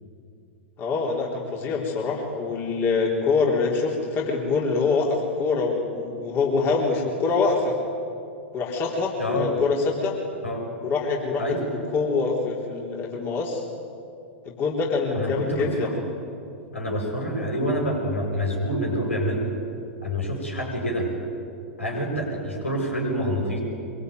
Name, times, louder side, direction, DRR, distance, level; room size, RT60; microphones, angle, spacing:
voice 1, 0.8-7.8 8.5-10.2 10.8-11.5 11.9-13.6 14.5-15.9, left 4 dB, 30° left, -2 dB, 3.8 m, -25 dB
voice 2, 9.2-9.6 10.4-10.6 11.4-11.6 15.1-16.0 16.7-19.5 20.0-21.1 21.8-23.6, equal, 85° left, -1 dB, 7.8 m, -27 dB
24.5 x 23.5 x 9.4 m, 2.6 s
figure-of-eight pair, 100°, 7 cm